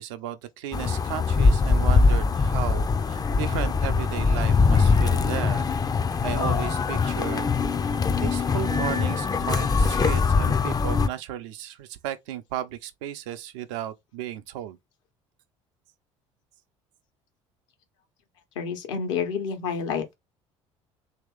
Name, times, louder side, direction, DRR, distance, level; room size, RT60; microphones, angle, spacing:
voice 1, 0.0-5.7 6.2-7.5 7.8-7.9 8.2-14.8, right 11 dB, 70° right, 0.6 m, -34 dB
sound 1, 0.7-11.1, left 4 dB, 25° left, 0.5 m, -22 dB
voice 2, 18.6-20.2, left 6 dB, 75° left, 1.1 m, -29 dB
3.0 x 2.8 x 3.5 m
hypercardioid pair, 60°, 16 cm